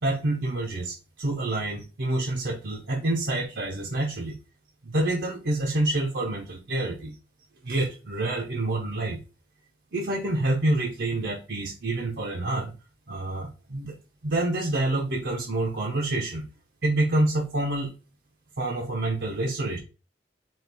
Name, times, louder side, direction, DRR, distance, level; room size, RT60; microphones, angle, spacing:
voice 1, 0.0-4.3 4.8-7.1 7.6-9.2 9.9-12.7 13.1-13.9 14.2-16.4 16.8-17.9 18.6-19.8, right 2 dB, 65° right, -1 dB, 0.8 m, -27 dB
4.5 x 3.1 x 3.4 m, 0.31 s
head